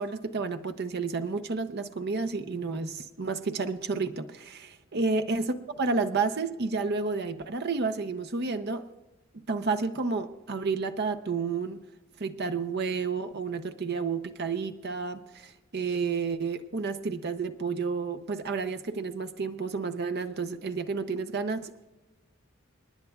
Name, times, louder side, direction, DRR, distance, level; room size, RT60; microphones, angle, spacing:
voice 1, 0.0-5.4 5.8-8.8 9.5-11.8 12.2-21.9, right 4 dB, 50° right, 9 dB, 0.7 m, -31 dB
27.5 x 10.5 x 2.4 m, 1.1 s
head